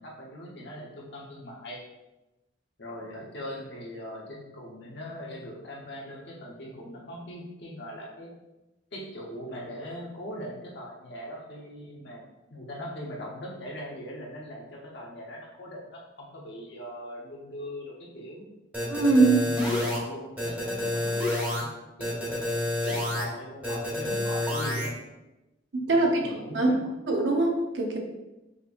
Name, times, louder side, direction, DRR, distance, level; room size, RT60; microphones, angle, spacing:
voice 1, 0.0-1.8 2.8-8.3 8.9-12.2 12.5-18.5 19.2-21.7 22.0-22.5 22.8-24.9 25.9-26.8, equal, 65° left, -3 dB, 1.1 m, -40 dB
sound 1, 18.7-20.0 20.4-21.6 22.0-23.2 23.6-24.9, left 1 dB, 10° right, 1.1 m, -28 dB
voice 2, 18.9-19.4 25.7-26.2 26.5-26.7 27.1-28.0, right 3 dB, 70° right, 1 dB, 0.7 m, -22 dB
5.2 x 2.9 x 2.5 m, 1.0 s
head